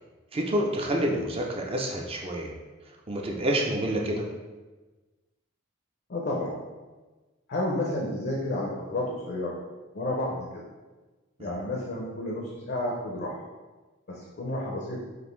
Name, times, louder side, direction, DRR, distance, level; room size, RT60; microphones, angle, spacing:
voice 1, 0.3-2.5 3.1-4.2 11.4-11.5, right 1 dB, 30° right, 0 dB, 0.4 m, -28 dB
voice 2, 6.1-6.5 7.5-9.6 9.9-10.6 11.4-13.4 14.1-15.0, left 1 dB, 50° left, -2 dB, 0.5 m, -31 dB
5.1 x 2.5 x 3.1 m, 1.2 s
head